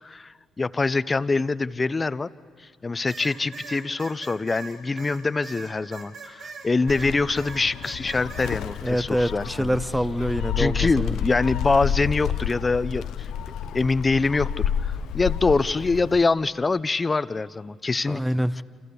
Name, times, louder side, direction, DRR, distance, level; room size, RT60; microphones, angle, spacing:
voice 1, 0.0-2.3 2.8-9.8 10.6-13.3 13.7-18.2 18.6-18.7, left 3 dB, 25° left, 16 dB, 0.7 m, -24 dB
sound 1, 3.1-7.1 7.4-8.6, right 4 dB, 75° right, 6.4 m, -40 dB
Gull seagull, 6.9-16.2, left 9 dB, 85° left, 0.7 m, -30 dB
voice 2, 8.8-11.1 18.1-18.6, equal, 5° right, 14 dB, 0.8 m, -25 dB
29.5 x 27.0 x 6.9 m, 2.1 s
cardioid pair, 90°, 0 cm